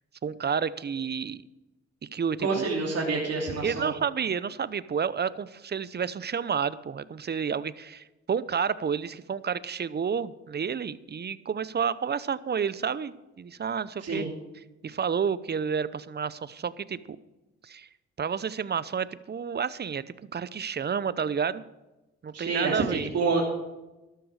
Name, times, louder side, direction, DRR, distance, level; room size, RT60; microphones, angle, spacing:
voice 1, 0.2-1.4 2.0-2.7 3.6-14.3 14.8-17.2 17.6-17.9 18.2-20.1 20.3-21.6 22.2-23.1, right 6 dB, 35° right, 17 dB, 0.7 m, -30 dB
voice 2, 2.4-3.9 14.0-14.3 22.3-23.4, right 4 dB, 55° right, -2 dB, 3.0 m, -27 dB
12.5 x 12.5 x 4.8 m, 1.0 s
supercardioid pair, 60°, 30 cm